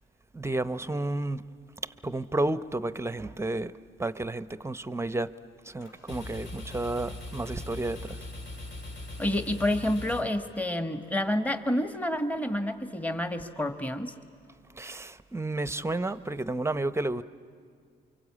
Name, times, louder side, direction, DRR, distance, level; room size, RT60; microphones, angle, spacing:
voice 1, 0.3-1.5 2.0-3.7 4.0-5.3 5.7-8.2 14.8-17.2, right 2 dB, 15° right, 14 dB, 0.7 m, -31 dB
sound 1, 5.8-11.0, left 2 dB, 70° left, 3.0 m, -41 dB
voice 2, 9.2-14.1, left 1 dB, 10° left, 8 dB, 1.3 m, -29 dB
29.0 x 24.0 x 8.5 m, 2.1 s
cardioid pair, 90°, 20 cm